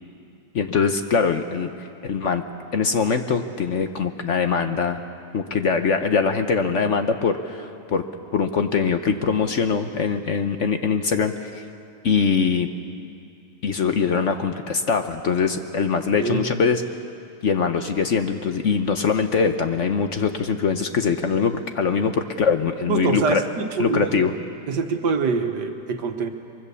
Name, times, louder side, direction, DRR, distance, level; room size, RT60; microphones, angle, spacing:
voice 1, 0.5-2.4 2.7-5.0 5.3-8.0 8.3-11.6 12.0-12.7 13.6-16.8 17.4-23.4 23.8-24.3, left 5 dB, 55° left, 7 dB, 1.0 m, -22 dB
voice 2, 22.9-24.3 24.7-26.3, right 5 dB, 75° right, 5 dB, 1.9 m, -25 dB
24.0 x 23.5 x 7.0 m, 2.5 s
omnidirectional pair, 1.8 m